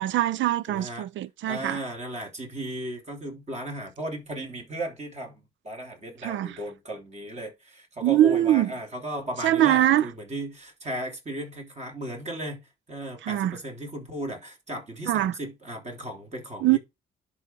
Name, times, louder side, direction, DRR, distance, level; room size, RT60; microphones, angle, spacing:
voice 1, 0.0-1.8 6.2-6.6 8.0-8.7 9.4-10.1 13.2-13.6 15.1-15.3 16.6-16.8, right 13 dB, 70° right, 0.5 m, -22 dB
voice 2, 0.7-1.1 1.5-16.8, right 1 dB, 35° right, 3.4 m, -36 dB
11.0 x 3.9 x 4.6 m
cardioid pair, 90°, 20 cm